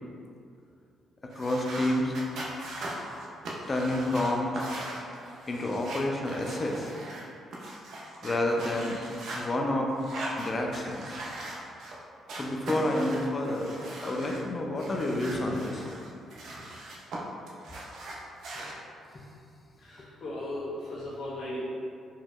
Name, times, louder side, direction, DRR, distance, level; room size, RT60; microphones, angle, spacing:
sound 1, 1.3-7.2 7.5-9.4 10.0-12.0 12.3-14.4 14.8-17.2 17.5-18.7, right 1 dB, 70° right, 0.7 m, -40 dB
voice 1, 1.4-2.2 3.7-4.6 5.5-7.0 8.2-9.1 9.3-9.9 10.4-11.2 12.3-13.7 14.0-15.8, left 1 dB, 30° left, 1 dB, 0.5 m, -29 dB
voice 2, 19.8-21.7, left 1 dB, 65° left, -9 dB, 1.3 m, -36 dB
4.3 x 2.8 x 2.4 m, 2.4 s
cardioid pair, 90°, 0 cm